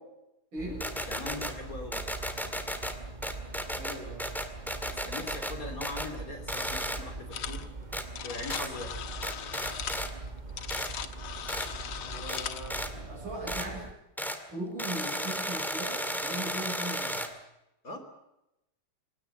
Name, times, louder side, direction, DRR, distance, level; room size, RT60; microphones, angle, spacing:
voice 1, 0.5-0.9 3.7-4.3 12.0-13.9 14.5-17.3, right 1 dB, 65° right, -6 dB, 7.8 m, -39 dB
sound 1, 0.6-13.9, right 3 dB, 30° right, 0.9 m, -42 dB
sound 2, 0.8-1.5 1.9-2.9 3.2-5.5 5.8-6.1 6.5-7.0 7.9-8.0 8.5-8.7 9.2-10.1 10.7-10.9 11.5-11.7 12.3-12.4 12.7-12.9 13.5-13.7 14.2-14.4 14.8-17.3, equal, ahead, 1.8 m, -34 dB
voice 2, 1.1-2.1 4.8-7.7 8.2-9.1 17.8-18.0, left 2 dB, 40° left, 6 dB, 3.6 m, -41 dB
sound 3, 7.3-7.7 7.9-12.7, left 9 dB, 80° left, 2.1 m, -39 dB
26.5 x 17.5 x 7.9 m, 0.89 s
omnidirectional pair, 2.4 m